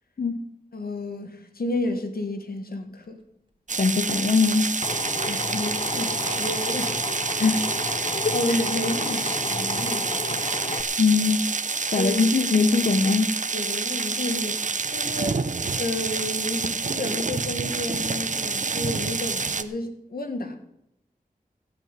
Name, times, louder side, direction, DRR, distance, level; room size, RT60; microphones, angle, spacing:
voice 1, 0.7-3.2 5.2-7.0 8.3-10.4 12.0-12.2 13.5-14.6 14.9-15.4 15.7-20.6, left 2 dB, 85° left, 1.9 m, -31 dB
Camera, 3.0-3.1 4.0-4.1 4.5-8.0, right 2 dB, 35° right, 2.2 m, -44 dB
sound 1, 3.7-19.6, right 4 dB, 55° right, 0.8 m, -28 dB
voice 2, 3.8-4.8 7.3-7.6 8.2-8.6 11.0-11.4 11.9-13.3, left 4 dB, 65° left, 1.0 m, -21 dB
Drill, 4.8-10.8, left 3 dB, 40° left, 0.9 m, -32 dB
16.0 x 6.1 x 9.2 m
cardioid pair, 45°, 15 cm